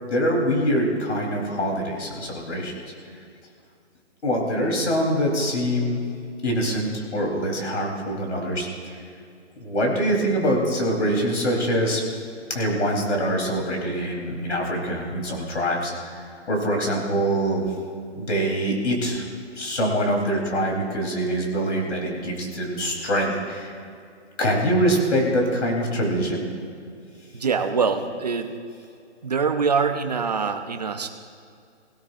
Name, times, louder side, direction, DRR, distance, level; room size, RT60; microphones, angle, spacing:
voice 1, 0.0-2.8 4.2-6.0 6.4-8.9 9.6-12.0 12.5-17.7 18.2-19.2 19.6-23.7 24.4-26.4, equal, 75° left, 0 dB, 4.2 m, -24 dB
voice 2, 27.3-28.5 29.2-31.1, right 5 dB, 35° right, 6 dB, 0.8 m, -24 dB
18.5 x 17.0 x 2.7 m, 2.4 s
hypercardioid pair, 175°, 36 cm